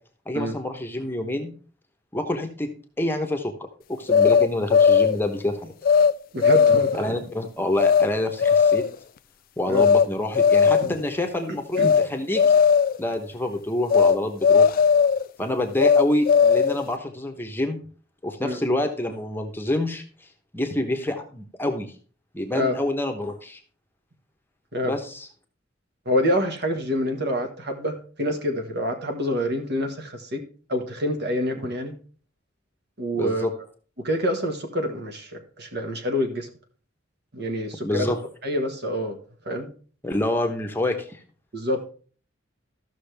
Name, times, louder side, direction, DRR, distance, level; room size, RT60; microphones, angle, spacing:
voice 1, 0.3-1.5 2.1-2.7 3.0-3.5 3.9-5.7 6.9-8.8 9.6-12.6 13.0-14.7 15.4-17.8 18.2-20.0 20.5-21.9 22.3-23.6 24.8-25.3 33.1-33.5 37.8-38.2 40.0-41.2, left 1 dB, 10° left, 4 dB, 0.9 m, -27 dB
sound 1, 4.1-5.2 5.8-6.1 6.4-7.0 7.8-8.1 8.4-8.9 9.7-10.1 10.3-11.0 11.7-12.1 12.3-13.0 13.9-14.2 14.4-15.2 15.8-16.8, left 6 dB, 50° left, 0.3 m, -17 dB
voice 2, 6.3-7.2 9.7-9.9 10.8-10.9 11.8-11.9 18.4-18.6 22.5-22.8 24.7-24.9 26.0-30.4 30.7-31.9 33.0-33.4 34.0-36.5 37.3-38.1 38.4-39.2 39.4-39.7 41.5-41.9, equal, 60° right, 4 dB, 1.5 m, -27 dB
13.5 x 6.2 x 3.4 m, 0.41 s
head